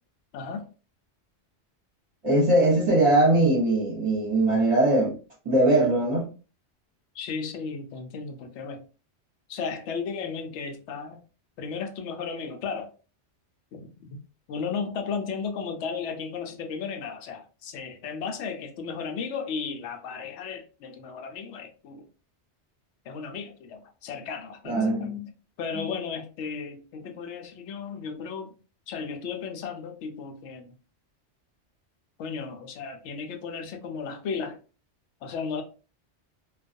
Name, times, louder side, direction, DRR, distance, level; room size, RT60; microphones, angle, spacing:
voice 1, 0.3-0.7 7.1-8.8 9.5-11.2 11.6-12.9 13.7-14.2 14.5-22.1 23.1-25.1 25.6-28.5 28.9-30.7 32.2-34.6 35.2-35.6, left 5 dB, 80° left, 0.9 m, -34 dB
voice 2, 2.2-5.1 5.4-6.3 24.7-25.3, right 2 dB, 30° right, 0.8 m, -21 dB
2.4 x 2.2 x 2.5 m
omnidirectional pair, 1.2 m